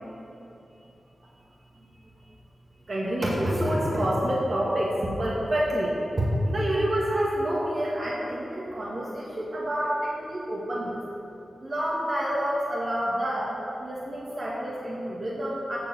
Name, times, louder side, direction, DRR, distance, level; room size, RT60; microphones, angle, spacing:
voice 1, 2.9-11.0 11.6-15.8, equal, 55° right, -5 dB, 1.6 m, -28 dB
7.1 x 6.7 x 7.1 m, 2.8 s
cardioid pair, 55°, 0 cm